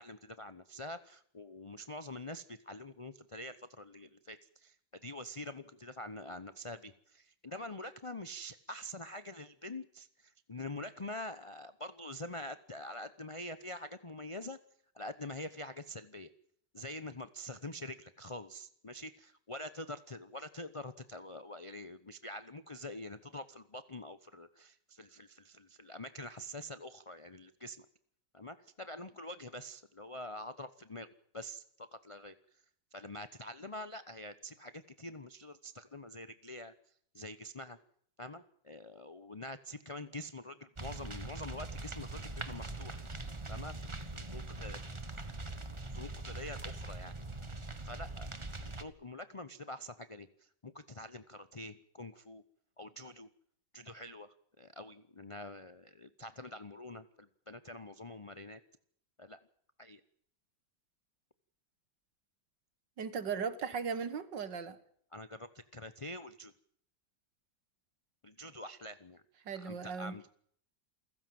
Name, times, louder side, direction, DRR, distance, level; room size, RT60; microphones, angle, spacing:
voice 1, 0.0-14.6 14.9-16.3 16.7-27.9 28.3-31.1 31.3-32.4 32.9-36.7 37.1-37.8 38.2-43.0 43.5-45.1 45.9-47.1 47.8-48.3 48.6-52.4 52.8-53.3 53.7-58.6 59.2-59.4 59.8-60.0 65.1-66.5 68.2-69.2 69.5-70.3, left 1 dB, 30° left, 12 dB, 0.6 m, -46 dB
sound 1, 40.8-48.8, right 2 dB, 20° right, 1.3 m, -42 dB
voice 2, 63.0-64.8 69.5-70.2, right 6 dB, 75° right, 13 dB, 2.3 m, -37 dB
28.5 x 16.0 x 7.7 m, 0.65 s
omnidirectional pair, 1.9 m